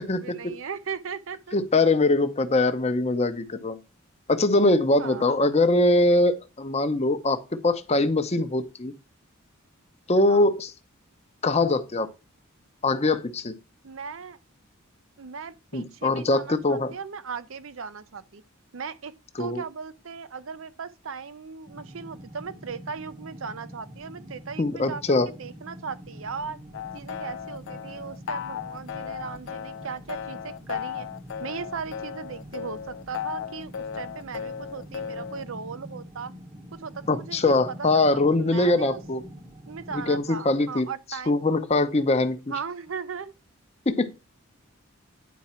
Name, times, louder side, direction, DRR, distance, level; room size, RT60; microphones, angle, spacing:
voice 1, 0.0-1.6 5.0-5.4 10.3-10.4 13.8-14.4 15.2-18.4 18.7-19.1 19.4-26.6 26.9-31.1 31.4-36.3 36.7-38.1 38.3-39.0 39.7-41.4 42.5-43.3, right 5 dB, 65° right, 0.6 m, -37 dB
voice 2, 1.5-3.8 4.3-8.9 10.1-10.7 11.4-12.1 12.8-13.5 15.7-16.9 19.4-19.6 24.6-25.3 37.1-39.2 39.9-40.9 41.3-42.4 43.9-44.1, left 2 dB, 30° left, 0.7 m, -22 dB
sound 1, 21.7-40.2, equal, 20° right, 0.9 m, -45 dB
sound 2, 26.7-35.4, left 8 dB, 60° left, 0.3 m, -36 dB
9.3 x 4.9 x 4.3 m
head